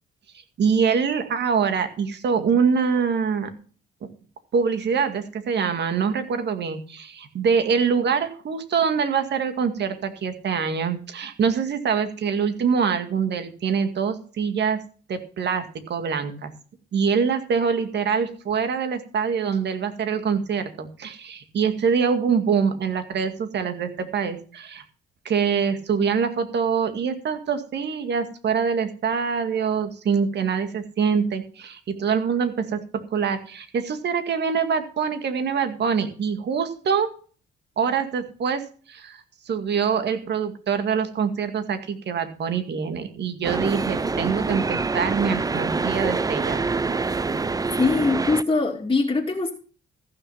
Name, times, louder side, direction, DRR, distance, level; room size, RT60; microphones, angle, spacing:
voice 1, 0.6-3.5 4.5-14.8 15.1-15.6 15.9-16.5 16.9-24.8 25.3-32.8 33.1-37.1 37.8-38.6 38.9-46.6, right 6 dB, 60° right, 8 dB, 2.1 m, -24 dB
sound 1, 43.4-48.4, right 4 dB, 20° right, 0.6 m, -26 dB
voice 2, 47.8-49.5, left 3 dB, 25° left, -3 dB, 2.6 m, -22 dB
14.5 x 6.6 x 5.7 m, 0.40 s
cardioid pair, 90°, 20 cm